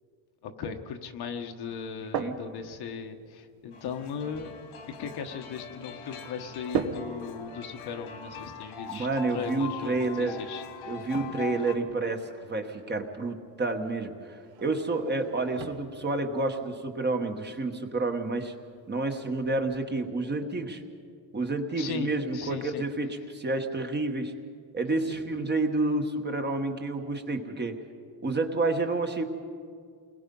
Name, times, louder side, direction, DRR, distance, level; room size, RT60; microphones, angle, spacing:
voice 1, 0.4-4.5 5.0-11.1 21.8-22.8 25.0-25.2, left 6 dB, 50° left, 5 dB, 1.3 m, -38 dB
sound 1, 1.7-19.8, right 6 dB, 60° right, 1.5 m, -42 dB
sound 2, 3.7-11.7, left 5 dB, 85° left, 2.8 m, -42 dB
voice 2, 8.9-10.3 10.9-18.5 18.9-20.8 21.3-24.3 24.7-27.7 28.2-29.2, right 2 dB, 20° right, 4 dB, 1.3 m, -29 dB
29.0 x 21.0 x 5.4 m, 2.2 s
cardioid pair, 165°, 48 cm